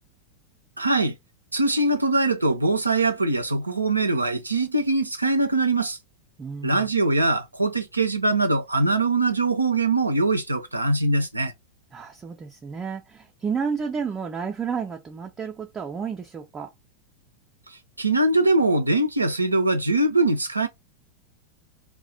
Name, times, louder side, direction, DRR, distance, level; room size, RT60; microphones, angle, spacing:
voice 1, 0.8-1.2 1.5-6.0 6.6-11.5 18.0-20.7, right 2 dB, 85° right, 0.4 m, -22 dB
voice 2, 6.4-6.9 11.9-16.7, right 6 dB, 20° right, 0.4 m, -31 dB
2.4 x 2.1 x 2.5 m
figure-of-eight pair, 90°, 0 cm